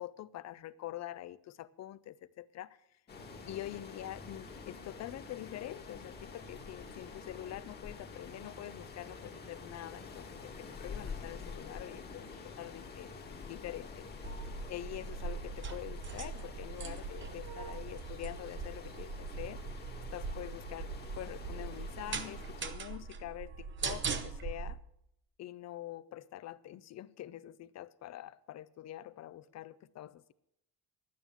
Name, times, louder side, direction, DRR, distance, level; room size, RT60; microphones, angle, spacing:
voice 1, 0.0-2.8 3.4-13.1 13.4-14.1 14.7-19.6 20.1-20.9 21.2-24.8 25.4-30.3, left 13 dB, 45° left, 0.5 m, -45 dB
sound 1, 3.1-22.6, left 4 dB, 25° left, 1.5 m, -48 dB
sound 2, 14.2-24.7, right 5 dB, 30° right, 0.9 m, -41 dB
11.5 x 9.3 x 7.1 m
cardioid pair, 180°, 36 cm